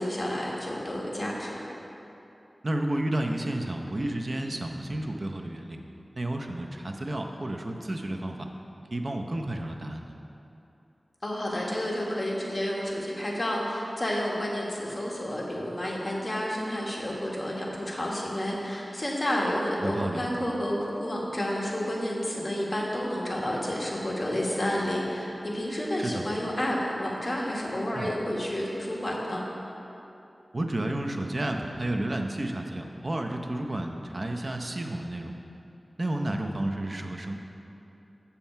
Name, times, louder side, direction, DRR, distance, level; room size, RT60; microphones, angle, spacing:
voice 1, 0.0-1.6 11.2-29.4, equal, 35° left, -3 dB, 1.5 m, -30 dB
voice 2, 2.6-5.8 6.1-8.5 8.9-10.1 19.8-20.2 26.0-26.2 27.9-28.1 30.5-35.4 36.0-37.4, right 1 dB, 45° right, 3 dB, 0.7 m, -31 dB
7.4 x 7.0 x 4.4 m, 2.9 s
wide cardioid pair, 60°, 0 cm